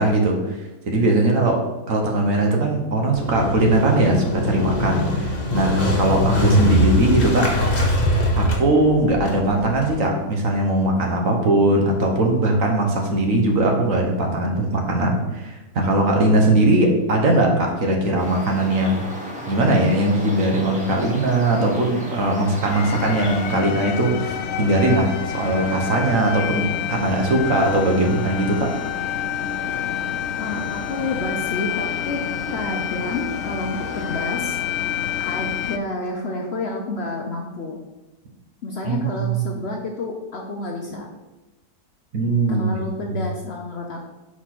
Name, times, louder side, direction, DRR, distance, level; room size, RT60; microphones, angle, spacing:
voice 1, 0.0-7.6 8.4-19.0 19.5-28.7 38.8-39.4 42.1-42.7 43.1-43.2, right 1 dB, 60° right, 2 dB, 1.4 m, -20 dB
Motorcycle, 3.1-9.9, equal, 30° left, 1.2 m, -21 dB
sound 1, 18.2-23.6, equal, 5° right, 1.0 m, -34 dB
sound 2, 22.7-35.8, left 8 dB, 85° left, 0.5 m, -28 dB
voice 2, 30.4-32.2 32.5-34.6 35.2-37.8 38.6-41.1 42.5-44.0, left 2 dB, 50° left, 1 dB, 0.9 m, -29 dB
4.8 x 4.3 x 5.8 m, 1.1 s
omnidirectional pair, 1.7 m